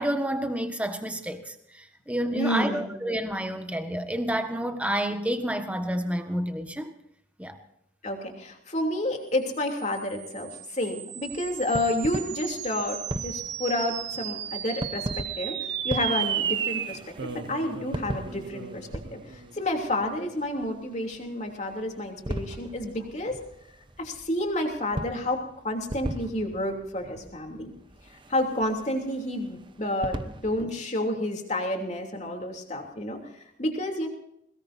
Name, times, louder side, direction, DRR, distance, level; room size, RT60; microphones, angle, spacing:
voice 1, 0.0-6.9 7.4-7.6 30.6-30.7, right 1 dB, 5° right, 6 dB, 1.5 m, -29 dB
voice 2, 2.3-2.8 8.0-23.4 24.0-27.7 28.3-34.1, left 1 dB, 35° left, 2 dB, 3.1 m, -30 dB
sound 1, 9.7-20.4, right 9 dB, 55° right, 1.2 m, -35 dB
sound 2, 11.3-30.6, right 1 dB, 25° right, 0.8 m, -40 dB
22.0 x 20.5 x 2.7 m, 0.76 s
head